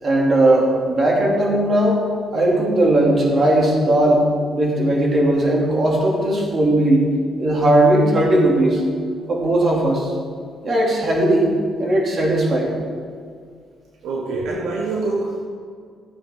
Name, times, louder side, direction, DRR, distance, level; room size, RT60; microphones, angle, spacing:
voice 1, 0.0-2.0 2.3-4.3 4.5-7.1 7.4-8.8 9.3-10.1 10.6-11.5 11.8-12.7, right 1 dB, 45° right, -2 dB, 3.0 m, -17 dB
voice 2, 14.0-15.4, right 3 dB, 85° right, -1 dB, 1.4 m, -25 dB
15.0 x 9.1 x 3.9 m, 2.2 s
cardioid pair, 90°, 0 cm